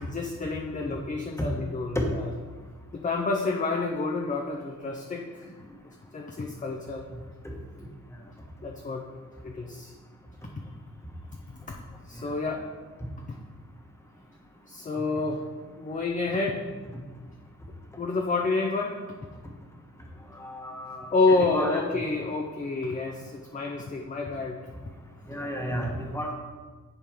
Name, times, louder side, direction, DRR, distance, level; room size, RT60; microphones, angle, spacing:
voice 1, 0.0-2.3 2.9-5.5 6.1-7.0 8.6-9.0 9.4-9.9 12.1-12.6 14.7-15.4 15.8-16.6 18.0-19.0 21.1-24.6, left 3 dB, 25° left, 1 dB, 0.6 m, -28 dB
voice 2, 20.4-21.0 21.5-21.8 25.3-26.3, equal, 10° left, 0 dB, 1.2 m, -31 dB
10.5 x 4.2 x 3.6 m, 1.4 s
wide cardioid pair, 105°, 30 cm